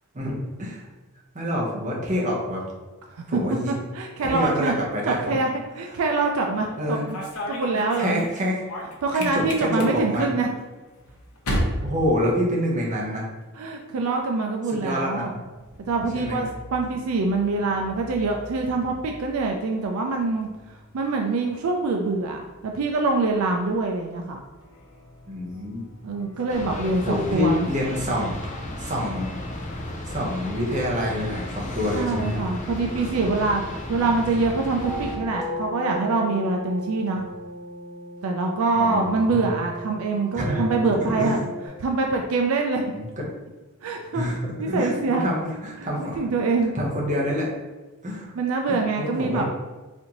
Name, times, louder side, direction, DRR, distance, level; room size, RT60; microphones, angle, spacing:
voice 1, 0.1-0.9 1.3-2.7 3.3-3.7 4.2-5.4 6.8-7.1 8.0-8.6 9.1-10.3 11.8-13.3 14.7-15.4 16.1-16.4 25.3-25.8 27.0-29.3 30.0-32.4 38.7-39.6 40.3-41.4 42.9-43.2 44.1-44.4 44.7-46.2 46.7-47.5 48.0-48.3 48.7-49.4, left 1 dB, 35° right, -3 dB, 0.8 m, -27 dB
voice 2, 3.7-4.7 5.1-7.2 7.5-8.3 9.0-10.5 13.6-15.4 15.9-24.4 26.0-27.7 31.9-33.6 33.9-37.2 38.2-41.4 41.8-42.8 43.8-44.2 44.6-45.3 46.2-46.7 48.4-49.4, right 3 dB, 70° right, 2 dB, 0.4 m, -25 dB
sound 1, 6.8-13.0 13.3-13.8 14.9-26.6, equal, 85° left, 0.8 m, -37 dB
sound 2, 26.5-35.2, left 1 dB, 35° left, 0.5 m, -34 dB
sound 3, 32.3-41.7, right 1 dB, 15° left, 1.1 m, -36 dB
4.2 x 2.6 x 2.9 m, 1.2 s
head